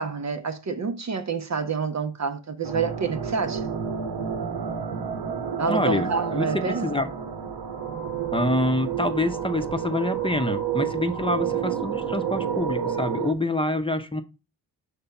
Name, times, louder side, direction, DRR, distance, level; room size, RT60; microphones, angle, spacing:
voice 1, 0.0-3.7 5.6-6.9, right 5 dB, 40° right, 0.8 m, -28 dB
sound 1, 2.6-13.3, right 7 dB, 65° right, 1.1 m, -30 dB
voice 2, 5.7-7.1 8.3-14.2, left 2 dB, 10° left, 0.9 m, -26 dB
5.8 x 3.3 x 5.4 m
hypercardioid pair, 40°, 44 cm